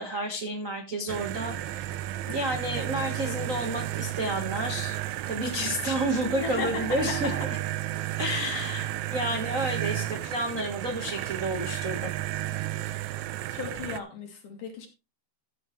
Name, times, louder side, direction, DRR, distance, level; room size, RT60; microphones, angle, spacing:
voice 1, 0.0-1.9 2.2-4.9 5.3-7.3 8.2-12.1, right 1 dB, 45° right, 3 dB, 1.0 m, -30 dB
sound 1, 1.1-14.0, right 14 dB, 75° right, 1.8 m, -33 dB
voice 2, 6.2-7.4 13.5-14.9, left 4 dB, 65° left, 2 dB, 4.2 m, -35 dB
14.0 x 8.5 x 3.2 m, 0.26 s
omnidirectional pair, 3.9 m